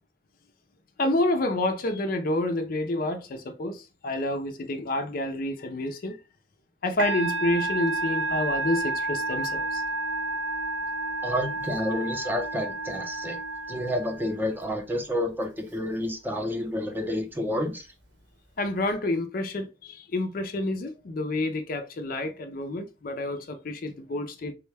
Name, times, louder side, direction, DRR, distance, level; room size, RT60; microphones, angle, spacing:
voice 1, 1.0-6.2 6.8-9.8 18.6-24.5, left 1 dB, 50° left, 0.4 m, -29 dB
Musical instrument, 7.0-14.6, right 2 dB, 90° right, 1.3 m, -30 dB
voice 2, 11.2-13.4 13.7-17.9, left 1 dB, 10° right, 0.6 m, -29 dB
3.6 x 2.2 x 3.2 m
head